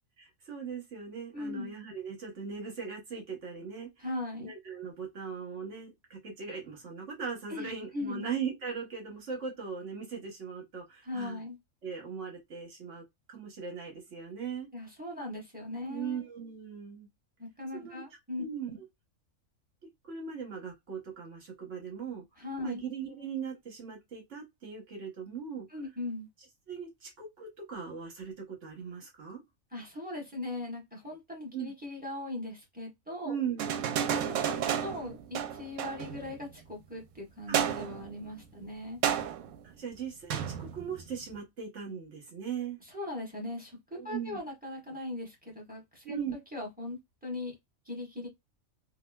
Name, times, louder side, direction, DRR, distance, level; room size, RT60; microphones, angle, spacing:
voice 1, 0.2-3.9 4.4-11.4 11.8-14.7 15.9-17.1 17.7-18.0 18.4-18.8 20.1-22.2 22.6-25.7 26.7-29.4 31.5-31.7 33.2-33.7 37.5-37.8 39.8-42.8 44.0-44.4 46.0-46.3, right 6 dB, 60° right, 1.5 m, -39 dB
voice 2, 1.3-1.8 4.0-4.5 7.5-8.3 11.0-11.6 14.7-16.2 17.4-18.4 22.4-22.8 25.7-26.3 29.7-33.4 34.0-39.0 42.9-46.2 46.5-47.6 47.8-48.3, left 2 dB, 5° right, 1.2 m, -39 dB
sound 1, 33.6-36.4 37.5-38.2 39.0-39.6 40.3-41.2, right 9 dB, 85° right, 1.0 m, -32 dB
3.6 x 2.2 x 2.2 m
omnidirectional pair, 1.4 m